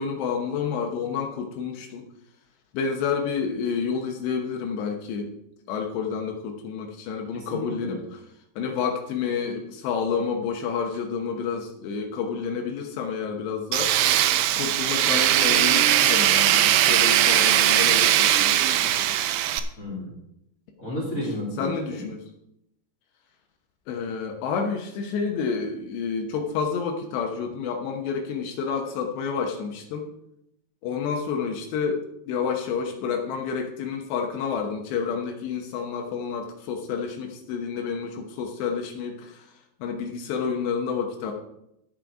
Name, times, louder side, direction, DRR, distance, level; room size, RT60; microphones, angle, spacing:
voice 1, 0.0-2.1 2.7-5.3 5.7-8.2 8.6-13.9 14.5-19.1 21.6-22.2 23.9-30.1 30.8-39.5 39.8-41.3, left 6 dB, 80° left, 2 dB, 3.3 m, -29 dB
voice 2, 7.3-8.0 19.8-20.1 20.8-22.0, left 1 dB, 25° left, -3 dB, 2.3 m, -32 dB
Tools, 13.7-19.6, right 12 dB, 80° right, 2.7 m, -20 dB
11.5 x 7.9 x 4.8 m, 0.81 s
omnidirectional pair, 4.9 m